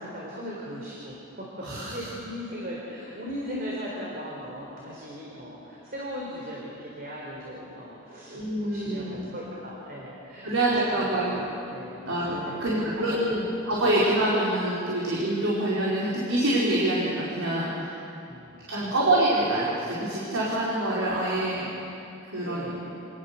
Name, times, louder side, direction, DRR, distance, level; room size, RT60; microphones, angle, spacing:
voice 1, 0.0-14.0 18.3-18.9 22.4-22.9, equal, 45° right, -4 dB, 4.0 m, -39 dB
voice 2, 1.6-2.0 8.3-9.2 10.4-11.4 12.0-18.0 18.7-21.7 22.3-22.7, right 1 dB, 80° right, -7 dB, 4.7 m, -26 dB
28.5 x 20.0 x 7.0 m, 2.8 s
head